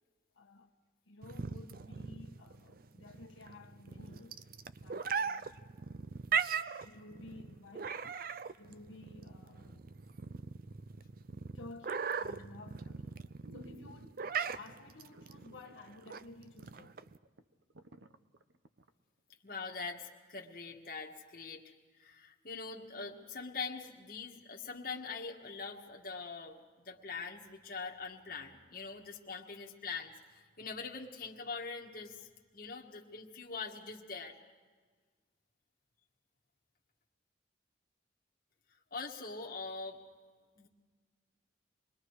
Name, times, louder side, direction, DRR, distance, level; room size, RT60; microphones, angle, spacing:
voice 1, 0.3-0.7 1.0-4.4 4.7-5.7 6.7-8.0 8.6-9.8 11.5-13.2 13.5-14.2 14.5-17.1, left 2 dB, 90° left, 1.4 m, -54 dB
sound 1, 1.2-17.2, right 6 dB, 50° right, 0.5 m, -39 dB
sound 2, 13.0-13.1 13.4-14.5 15.1-15.8 16.1-16.2 16.7-16.8 17.0-18.9 19.3-19.4, right 1 dB, 75° right, 0.9 m, -56 dB
voice 2, 19.4-21.6 22.0-32.3 32.5-34.3 38.9-40.0 40.6-40.7, left 4 dB, 50° left, 1.9 m, -43 dB
27.0 x 21.0 x 4.8 m
head